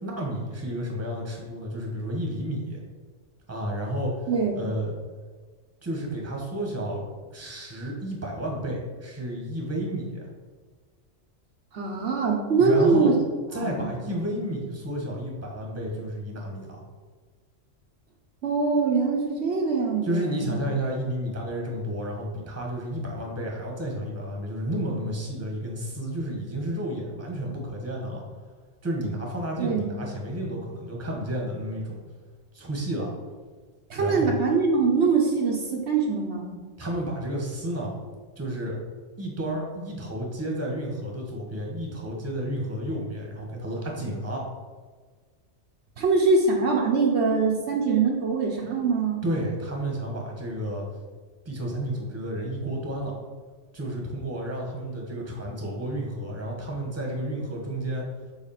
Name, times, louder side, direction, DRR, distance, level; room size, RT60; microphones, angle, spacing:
voice 1, 0.0-2.8 3.5-4.3 4.5-4.9 5.8-7.0 7.3-10.3 12.6-13.2 13.5-16.8 20.0-28.2 28.8-32.0 32.5-33.1 34.0-34.3 36.8-37.9 38.4-38.8 39.2-44.4 49.2-50.9 51.4-53.1 53.7-58.0, right 1 dB, 15° right, -1 dB, 1.2 m, -31 dB
voice 2, 4.3-4.6 11.7-13.1 13.5-13.9 18.4-20.5 29.6-29.9 33.9-36.5 46.0-49.2, right 4 dB, 65° right, 0 dB, 1.0 m, -23 dB
4.8 x 4.1 x 5.7 m, 1.4 s
omnidirectional pair, 1.3 m